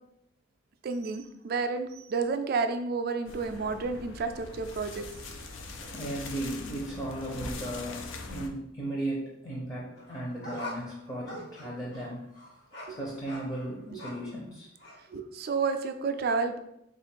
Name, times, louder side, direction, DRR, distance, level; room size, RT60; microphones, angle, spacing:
voice 1, 0.8-5.1 5.8-5.9 12.9-13.0 15.1-16.6, right 4 dB, 50° right, 8 dB, 0.3 m, -31 dB
sound 1, 3.3-8.5, left 3 dB, 90° left, 0.5 m, -42 dB
voice 2, 5.9-12.2 12.9-14.7, right 1 dB, 20° left, -4 dB, 0.6 m, -36 dB
sound 2, 10.0-14.4 14.8-15.0, left 1 dB, 55° left, 1.2 m, -44 dB
3.5 x 2.5 x 4.4 m, 0.81 s
head